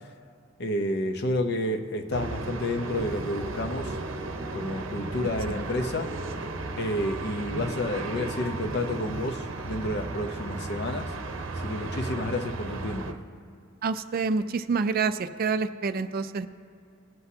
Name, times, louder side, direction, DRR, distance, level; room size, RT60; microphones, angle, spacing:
voice 1, 0.6-4.0 4.5-6.1 6.8-11.1 11.6-13.2, left 1 dB, 55° left, 5 dB, 0.8 m, -30 dB
sound 1, 2.1-13.1, right 2 dB, 65° right, 0.8 m, -35 dB
voice 2, 13.8-16.5, right 4 dB, 45° right, 11 dB, 0.4 m, -27 dB
20.5 x 7.8 x 2.8 m, 2.4 s
head